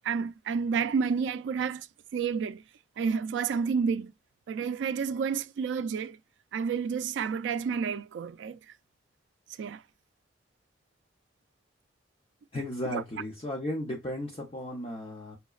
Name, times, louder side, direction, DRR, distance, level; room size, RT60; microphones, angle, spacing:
voice 1, 0.0-1.9 2.1-2.6 3.0-4.1 4.5-6.2 6.5-8.6 9.6-9.8 12.9-13.0, right 6 dB, 75° right, 0.3 m, -30 dB
voice 2, 12.5-15.4, left 1 dB, 30° left, 0.7 m, -35 dB
5.6 x 2.0 x 2.3 m
head